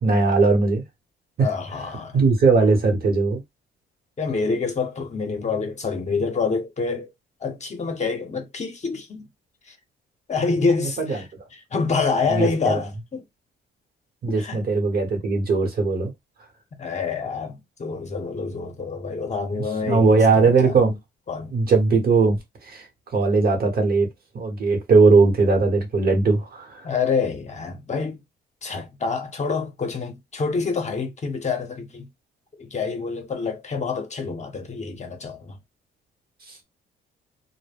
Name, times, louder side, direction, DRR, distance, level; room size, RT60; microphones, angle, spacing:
voice 1, 0.0-0.8 1.4-1.5 2.1-3.4 11.0-11.2 12.3-12.8 14.2-16.1 19.8-21.0 21.5-24.1 24.3-26.9 36.5-36.6, right 4 dB, 50° right, 1.0 m, -19 dB
voice 2, 1.4-2.2 4.2-7.1 7.4-9.3 9.7-9.8 10.3-11.2 11.5-13.2 14.4-14.7 16.8-20.7 21.3-21.6 26.8-28.2 28.6-32.1 32.6-35.6, left 4 dB, 35° left, 0.8 m, -27 dB
2.1 x 2.1 x 3.4 m
cardioid pair, 90°, 20 cm